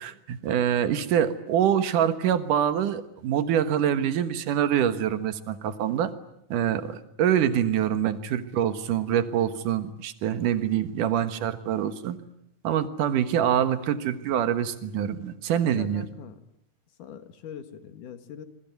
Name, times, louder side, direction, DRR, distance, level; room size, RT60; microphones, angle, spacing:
voice 1, 0.0-6.1 6.5-12.2 12.6-16.0, right 9 dB, 90° right, 11 dB, 3.0 m, -25 dB
voice 2, 15.7-16.4 17.0-18.5, left 8 dB, 90° left, 10 dB, 3.3 m, -42 dB
27.0 x 23.0 x 9.4 m, 0.77 s
omnidirectional pair, 3.6 m